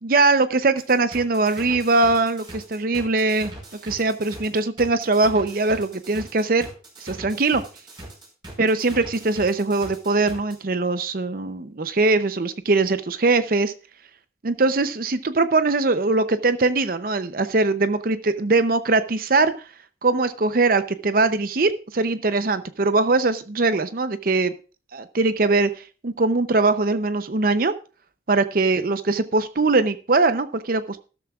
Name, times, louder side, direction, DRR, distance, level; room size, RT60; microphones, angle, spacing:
voice 1, 0.0-3.5 3.8-6.7 7.0-7.6 8.6-13.7 14.4-19.5 20.0-24.5 24.9-27.7 28.3-31.0, right 3 dB, 50° right, 11 dB, 0.7 m, -21 dB
sound 1, 0.8-10.5, right 1 dB, 25° right, 5.2 m, -41 dB
13.0 x 13.0 x 2.4 m, 0.36 s
head